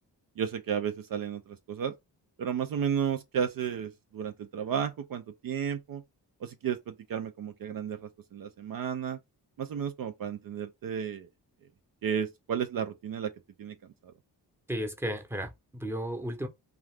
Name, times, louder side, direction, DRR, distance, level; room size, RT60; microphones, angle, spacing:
voice 1, 0.4-1.9 2.4-6.0 6.4-9.2 9.6-11.3 12.0-13.3 13.6-13.8 14.0-14.1, right 8 dB, 55° right, 0.5 m, -33 dB
voice 2, 14.7-16.5, equal, 5° right, 0.8 m, -34 dB
2.4 x 2.3 x 3.3 m
cardioid pair, 55°, 42 cm